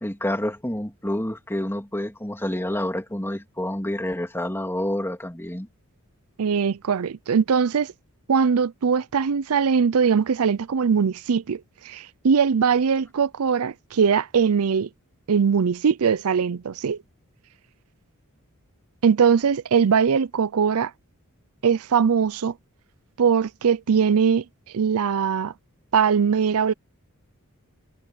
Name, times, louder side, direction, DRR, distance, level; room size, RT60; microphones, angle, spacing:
voice 1, 0.0-5.7, left 1 dB, 10° left, 3.0 m, -28 dB
voice 2, 6.4-7.9 8.3-14.9 15.3-17.0 19.0-20.9 21.6-22.5 23.2-24.4 24.7-25.5 25.9-26.7, right 6 dB, 70° right, 0.5 m, -21 dB
head